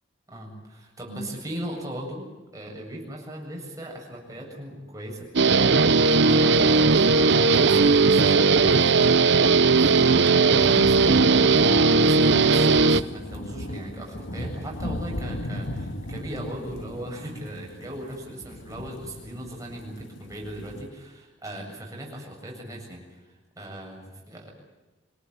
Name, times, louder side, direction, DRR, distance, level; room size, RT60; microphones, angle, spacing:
voice 1, 0.3-5.3 6.0-9.3 10.0-24.5, right 1 dB, 20° right, 0 dB, 7.9 m, -38 dB
Guitar, 5.4-13.0, right 4 dB, 65° right, 0.8 m, -18 dB
sound 1, 5.9-20.9, left 1 dB, 85° left, 2.0 m, -38 dB
26.0 x 18.0 x 9.7 m, 1.1 s
head